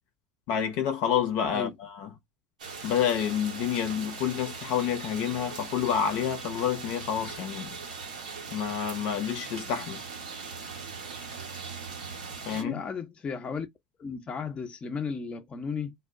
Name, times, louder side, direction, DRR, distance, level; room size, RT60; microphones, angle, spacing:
voice 1, 0.5-2.1 2.8-7.8 8.5-10.0 12.5-12.8, left 9 dB, 60° left, 0.8 m, -29 dB
sound 1, 2.6-12.6, right 5 dB, 85° right, 0.9 m, -40 dB
voice 2, 12.5-13.7 14.0-15.9, left 5 dB, 30° left, 0.7 m, -34 dB
2.3 x 2.1 x 3.6 m
hypercardioid pair, 80°, 4 cm